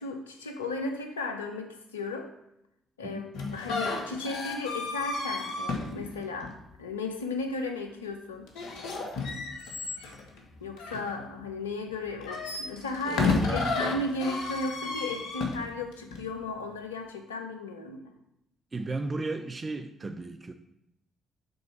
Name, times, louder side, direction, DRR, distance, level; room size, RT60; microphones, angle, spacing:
voice 1, 0.0-2.3 3.0-8.5 10.6-18.1, left 2 dB, 90° left, 5 dB, 0.6 m, -35 dB
sound 1, 3.3-6.7 8.5-11.5 12.1-16.3, left 3 dB, 70° left, 1.1 m, -32 dB
voice 2, 13.1-13.7 18.7-20.5, right 3 dB, 30° right, 7 dB, 0.5 m, -35 dB
5.4 x 3.9 x 5.7 m, 0.83 s
hypercardioid pair, 50°, 0 cm